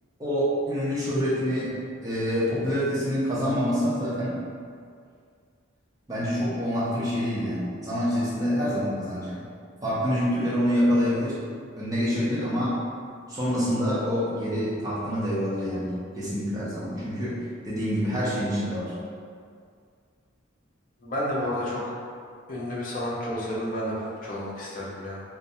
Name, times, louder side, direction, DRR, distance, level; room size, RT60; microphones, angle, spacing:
voice 1, 0.2-1.7 2.0-4.4 6.1-9.4 9.8-11.4 11.8-12.8 13.3-18.9, equal, 15° right, -9 dB, 0.5 m, -26 dB
voice 2, 21.0-21.8 22.5-25.2, equal, 40° left, -6 dB, 0.5 m, -31 dB
2.4 x 2.1 x 2.7 m, 2.2 s
head